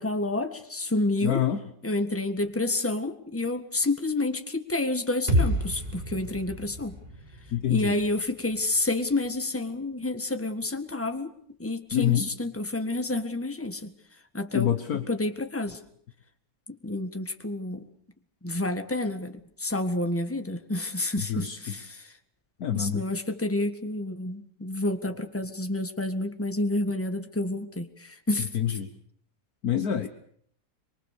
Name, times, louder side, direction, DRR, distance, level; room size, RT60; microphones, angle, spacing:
voice 1, 0.0-1.4 1.8-7.0 7.7-11.3 11.6-13.9 14.3-14.7 15.1-15.8 16.8-17.8 18.4-22.1 22.7-28.5, left 2 dB, 10° left, 8 dB, 1.5 m, -29 dB
voice 2, 1.2-1.6 7.5-8.0 11.9-12.3 14.5-15.0 21.2-21.7 22.6-23.0 28.5-28.9 29.6-30.1, left 10 dB, 65° left, 8 dB, 1.6 m, -26 dB
sound 1, 5.3-9.1, equal, 25° right, 5.0 m, -30 dB
24.0 x 23.5 x 6.8 m, 0.64 s
omnidirectional pair, 1.8 m